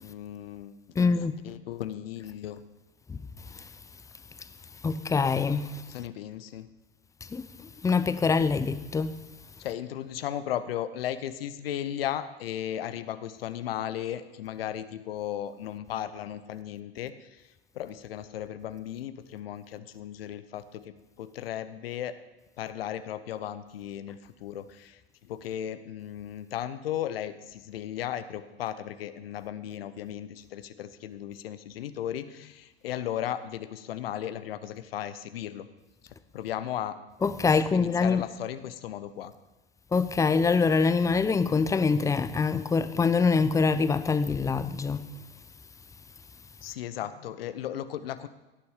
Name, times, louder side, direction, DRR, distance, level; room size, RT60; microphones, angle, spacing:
voice 1, 0.0-1.1 1.4-2.6 5.9-6.7 9.6-17.4 17.7-22.1 22.6-35.7 36.3-37.0 37.5-39.3 46.6-48.3, left 11 dB, 65° left, 0.9 m, -36 dB
voice 2, 1.0-1.3 3.1-3.2 3.5-3.6 4.8-5.8 7.3-9.2 37.2-38.2 39.9-45.1, left 4 dB, 10° left, 0.5 m, -25 dB
17.0 x 7.0 x 5.0 m
figure-of-eight pair, 90°, 31 cm